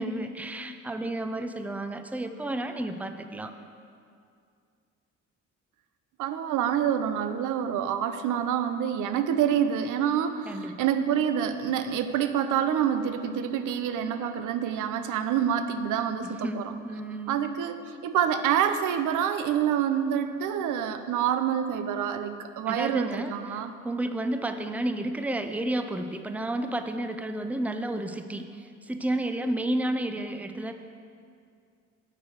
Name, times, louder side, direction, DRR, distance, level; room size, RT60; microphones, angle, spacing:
voice 1, 0.0-3.5 10.5-10.9 16.2-17.4 22.7-30.7, right 1 dB, 5° right, 7 dB, 0.5 m, -31 dB
voice 2, 6.2-16.7 17.3-23.7, right 9 dB, 85° right, 10 dB, 0.6 m, -27 dB
9.0 x 4.7 x 7.2 m, 2.3 s
cardioid pair, 90°, 30 cm